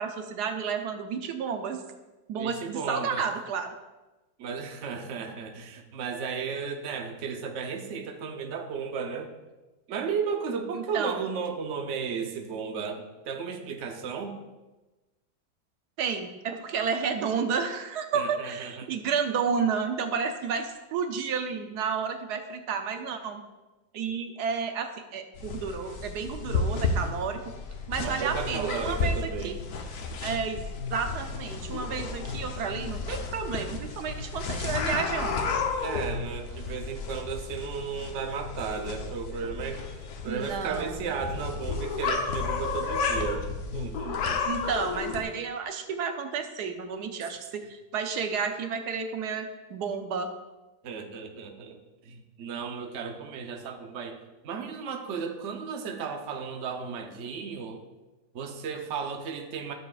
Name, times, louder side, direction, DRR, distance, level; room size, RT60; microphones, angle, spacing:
voice 1, 0.0-1.8 2.3-3.7 10.7-11.2 16.0-23.4 23.9-27.4 27.9-29.6 30.2-30.6 30.9-35.4 40.2-41.0 44.5-50.3, right 6 dB, 80° right, 6 dB, 1.2 m, -31 dB
voice 2, 2.3-3.3 4.4-9.3 9.9-14.3 18.1-18.9 28.0-29.5 35.8-39.9 40.2-43.5 43.7-44.4 50.8-51.8 52.0-57.8 58.3-59.7, right 6 dB, 55° right, 4 dB, 1.0 m, -34 dB
sound 1, 25.4-45.2, left 4 dB, 70° left, 1.4 m, -32 dB
13.0 x 7.1 x 2.4 m, 1.1 s
omnidirectional pair, 1.7 m